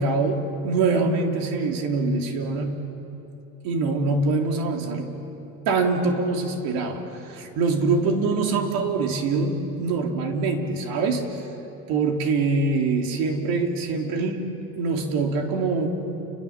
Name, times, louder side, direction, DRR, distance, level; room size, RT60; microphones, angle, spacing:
voice 1, 0.0-2.8 3.6-5.1 5.7-11.2 11.9-14.5 14.8-15.9, right 3 dB, 65° right, 3 dB, 3.2 m, -24 dB
29.5 x 23.0 x 7.3 m, 2.9 s
supercardioid pair, 110°, 37 cm